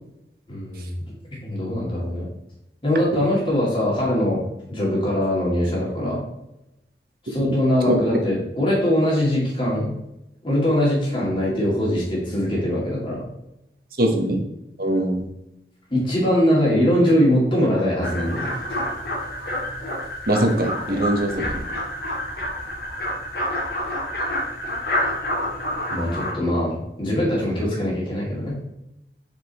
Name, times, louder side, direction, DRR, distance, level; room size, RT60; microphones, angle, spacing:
voice 1, 0.5-1.1 1.4-2.3 2.8-4.4 4.7-6.2 7.2-10.0 10.4-13.3 15.9-18.6 25.9-28.6, equal, 30° left, -4 dB, 2.2 m, -22 dB
voice 2, 14.0-14.4 14.8-15.2 20.3-21.6, right 1 dB, 55° right, 3 dB, 1.0 m, -21 dB
sound 1, 18.0-26.3, left 1 dB, 65° left, 1.6 m, -28 dB
5.0 x 4.7 x 4.1 m, 0.89 s
head